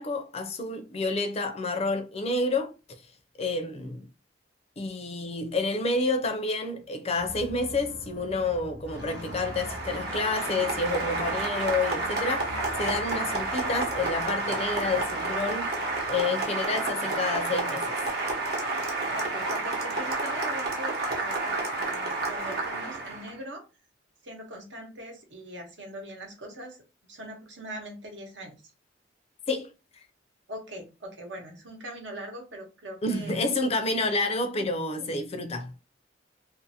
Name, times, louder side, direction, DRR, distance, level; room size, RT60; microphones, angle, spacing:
voice 1, 0.0-2.7 3.4-4.1 4.8-15.7 16.1-18.0 29.5-29.7 33.0-35.7, left 2 dB, 35° left, 0.4 m, -29 dB
sound 1, 7.1-16.1, left 1 dB, 85° left, 0.6 m, -43 dB
Applause, 8.9-23.3, right 2 dB, 60° right, 0.8 m, -30 dB
voice 2, 19.1-23.7 24.2-26.8 27.1-28.6 30.5-33.5 34.6-34.7, right 1 dB, 80° right, 1.0 m, -41 dB
2.5 x 2.5 x 2.7 m
head